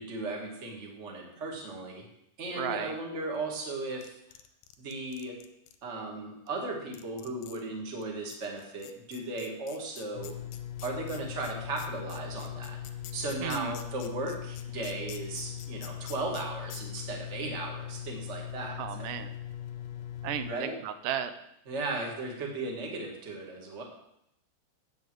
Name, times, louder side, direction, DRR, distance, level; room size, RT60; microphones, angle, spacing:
voice 1, 0.0-2.0 2.4-4.2 4.8-5.4 5.8-10.4 10.8-12.8 13.1-19.1 20.5-20.8 21.7-23.8, right 2 dB, 30° right, 0 dB, 1.6 m, -36 dB
voice 2, 2.6-3.0 13.4-13.7 18.8-19.3 20.2-21.3, right 9 dB, 85° right, 10 dB, 2.2 m, -34 dB
sound 1, 3.6-5.8 6.5-6.6 6.9-7.6 8.0-8.1 8.3-16.4 16.7-16.8, left 11 dB, 90° left, 2.4 m, -48 dB
sound 2, 10.1-20.5, left 10 dB, 70° left, 1.7 m, -40 dB
8.7 x 6.1 x 7.7 m, 0.78 s
omnidirectional pair, 3.8 m